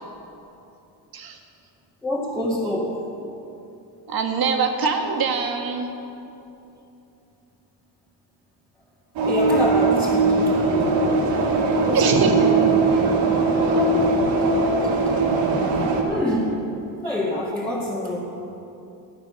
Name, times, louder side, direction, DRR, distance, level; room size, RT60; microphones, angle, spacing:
voice 1, 2.0-3.0 9.2-11.1 11.6-12.8 13.2-14.1 16.1-16.6 17.0-18.2, left 1 dB, 5° left, -8 dB, 2.2 m, -26 dB
voice 2, 4.1-5.9 11.9-12.3 13.7-13.8, right 5 dB, 55° right, 4 dB, 1.6 m, -23 dB
sound 1, 9.2-16.0, right 3 dB, 85° right, 2.1 m, -20 dB
13.0 x 9.7 x 6.9 m, 2.9 s
cardioid pair, 115°, 44 cm